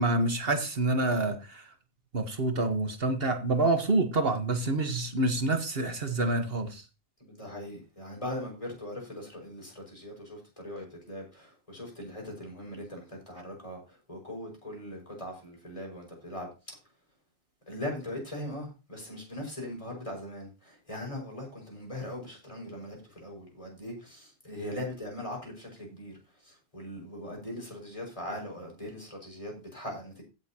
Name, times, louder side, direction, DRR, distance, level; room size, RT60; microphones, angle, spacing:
voice 1, 0.0-1.7 2.1-6.8, right 2 dB, 65° right, 1.7 m, -27 dB
voice 2, 7.2-13.8 14.1-16.5 17.7-26.1 26.7-30.2, left 1 dB, 30° left, 5.6 m, -40 dB
16.5 x 7.3 x 2.9 m
omnidirectional pair, 1.1 m